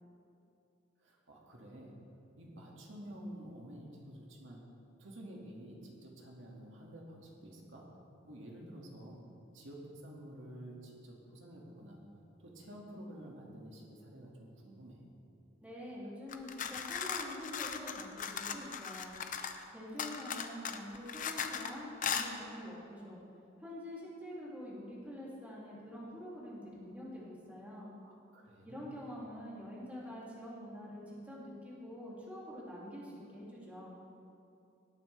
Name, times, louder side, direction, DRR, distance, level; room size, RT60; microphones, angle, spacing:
voice 1, 1.0-2.0 2.4-4.6 5.0-7.8 8.2-9.2 9.5-12.0 12.4-15.0 28.0-28.8, right 1 dB, 70° right, -2 dB, 2.0 m, -50 dB
voice 2, 15.6-19.1 19.7-23.2 23.6-27.9 28.6-33.9, left 1 dB, 10° right, -7 dB, 2.6 m, -46 dB
sound 1, 16.3-19.6 20.0-21.7 22.0-22.3, left 7 dB, 40° left, 0.6 m, -38 dB
18.0 x 8.8 x 3.4 m, 2.7 s
head